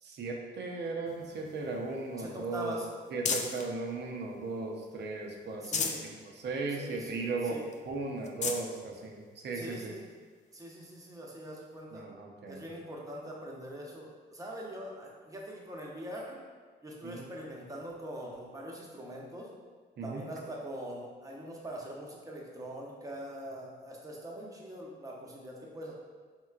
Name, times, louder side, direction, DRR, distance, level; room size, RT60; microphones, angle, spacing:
voice 1, 0.0-2.8 3.1-7.6 7.8-9.9 11.9-12.6 17.0-17.3 20.0-20.2, right 3 dB, 60° right, 1 dB, 0.7 m, -37 dB
sound 1, 1.1-3.7 4.2-5.0 5.4-6.1 6.6-6.7 7.0-7.1 7.7-7.8 8.2-8.7 9.5-9.6 11.4-11.5, left 5 dB, 40° left, 0.4 m, -36 dB
voice 2, 2.2-2.9 5.6-6.2 6.7-7.7 9.5-10.1 10.5-12.1 12.5-16.4 16.8-19.5 20.0-25.9, right 1 dB, 15° right, -2 dB, 0.8 m, -43 dB
4.5 x 3.5 x 2.4 m, 1.5 s
cardioid pair, 90°, 20 cm